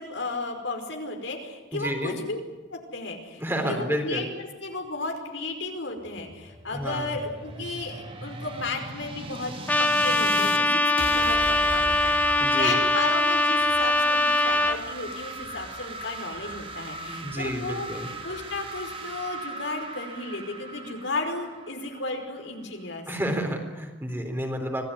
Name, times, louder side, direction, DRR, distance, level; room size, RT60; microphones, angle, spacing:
voice 1, 0.0-2.4 2.7-3.4 3.7-9.5 9.8-17.9 18.2-23.0, left 3 dB, 75° left, 3 dB, 5.1 m, -34 dB
voice 2, 1.7-2.2 3.4-4.3 6.7-7.2 12.4-12.8 17.1-18.1 23.1-24.8, equal, 10° right, 4 dB, 3.7 m, -30 dB
sound 1, 6.0-10.6 11.0-22.5, right 2 dB, 30° right, 2.8 m, -38 dB
Trumpet, 9.7-14.8, left 1 dB, 10° left, 1.5 m, -22 dB
26.0 x 17.5 x 9.9 m, 1.3 s
head